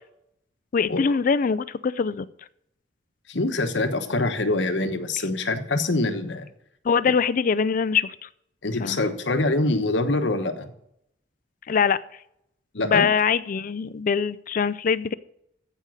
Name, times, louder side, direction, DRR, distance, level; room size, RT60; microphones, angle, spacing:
voice 1, 0.7-2.3 6.8-8.3 8.8-9.0 11.7-12.0 12.8-15.1, left 6 dB, 50° left, 16 dB, 0.4 m, -23 dB
voice 2, 3.3-6.5 8.6-10.7 12.7-13.1, left 2 dB, 85° left, 8 dB, 1.2 m, -24 dB
14.5 x 5.3 x 6.4 m, 0.76 s
head